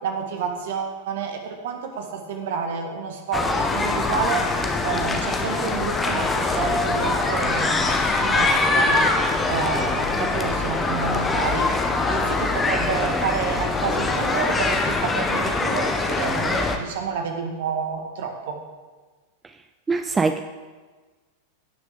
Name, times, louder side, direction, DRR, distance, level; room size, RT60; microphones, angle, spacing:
voice 1, 0.0-18.6, right 6 dB, 55° right, 4 dB, 1.4 m, -29 dB
sound 1, 3.3-16.8, left 3 dB, 15° left, 1.0 m, -23 dB
voice 2, 19.9-20.4, right 4 dB, 15° right, 8 dB, 0.4 m, -22 dB
16.5 x 6.1 x 3.6 m, 1.3 s
figure-of-eight pair, 90°, 0 cm